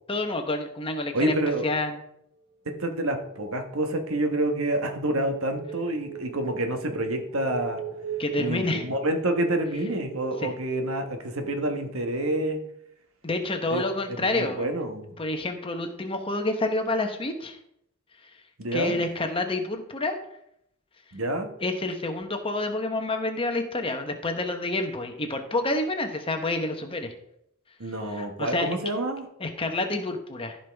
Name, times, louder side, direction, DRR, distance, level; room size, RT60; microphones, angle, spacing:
voice 1, 0.1-1.3 1.6-2.0 8.2-8.9 10.4-10.5 13.2-14.7 15.2-17.6 18.7-20.2 21.6-27.1 28.1-28.7 29.4-30.6, left 2 dB, 25° left, 5 dB, 1.1 m, -28 dB
voice 2, 1.1-1.7 2.6-7.8 8.4-12.6 13.7-13.8 14.1-15.1 18.6-19.0 21.1-21.5 27.8-29.2, right 1 dB, 75° right, 6 dB, 1.3 m, -28 dB
sound 1, 2.7-11.6, right 5 dB, 55° right, 2.3 m, -40 dB
14.5 x 5.5 x 3.5 m, 0.77 s
head